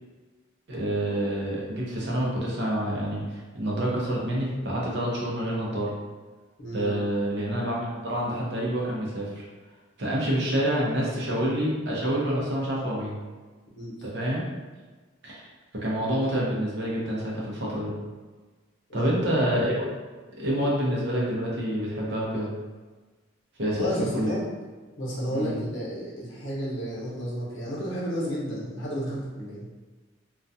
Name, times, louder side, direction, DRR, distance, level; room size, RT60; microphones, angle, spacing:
voice 1, 0.7-5.9 6.7-9.4 10.0-13.1 14.0-14.5 15.2-15.5 15.7-17.9 18.9-19.8 20.4-22.5 23.6-23.9 24.1-24.3 25.3-25.5, equal, 60° right, -4 dB, 0.7 m, -27 dB
voice 2, 6.6-7.0 13.7-13.9 18.9-19.5 23.8-24.4 25.0-29.6, equal, 60° left, -7 dB, 0.8 m, -32 dB
2.3 x 2.2 x 2.6 m, 1.3 s
head